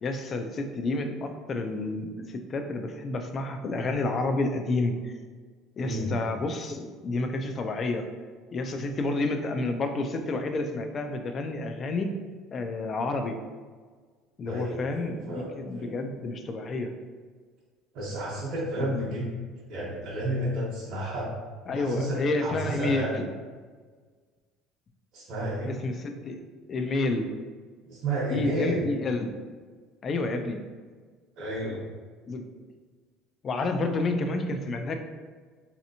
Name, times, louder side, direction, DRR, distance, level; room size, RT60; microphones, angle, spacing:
voice 1, 0.0-5.1 5.8-8.1 8.5-12.1 12.5-13.4 14.4-16.9 18.8-19.2 21.7-23.3 25.7-26.4 26.7-27.3 28.3-29.3 30.0-30.6 32.3-32.5 33.4-35.0, left 2 dB, 30° left, 6 dB, 0.3 m, -30 dB
voice 2, 5.8-6.2 14.4-15.9 17.9-19.3 19.7-21.3 21.7-23.1 25.1-25.7 27.8-28.8 31.4-31.9, right 1 dB, 55° right, -7 dB, 0.9 m, -31 dB
3.2 x 2.8 x 2.7 m, 1.5 s
cardioid pair, 145°, 0 cm